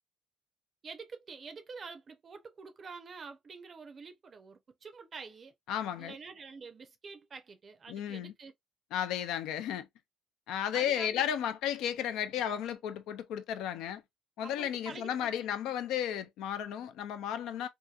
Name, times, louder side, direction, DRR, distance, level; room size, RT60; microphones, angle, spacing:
voice 1, 0.8-5.5 6.0-8.5 10.7-11.2 14.4-15.5, right 5 dB, 40° right, 0.5 m, -47 dB
voice 2, 5.7-6.2 7.9-8.3 8.9-9.9 10.5-14.0 14.4-17.7, left 10 dB, 85° left, 0.5 m, -34 dB
2.7 x 2.5 x 2.3 m
cardioid pair, 105°, 0 cm